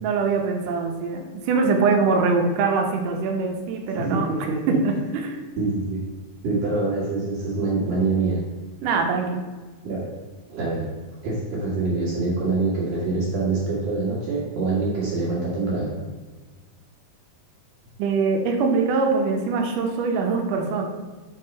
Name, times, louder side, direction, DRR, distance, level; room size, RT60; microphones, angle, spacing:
voice 1, 0.0-4.3 4.7-5.4 8.8-9.4 18.0-20.9, right 4 dB, 85° right, 2 dB, 2.6 m, -23 dB
voice 2, 3.9-4.7 5.6-6.1 6.4-8.4 9.8-10.2 10.5-10.9 11.2-15.9, right 3 dB, 60° right, -6 dB, 3.1 m, -25 dB
8.8 x 4.7 x 5.4 m, 1.3 s
omnidirectional pair, 3.6 m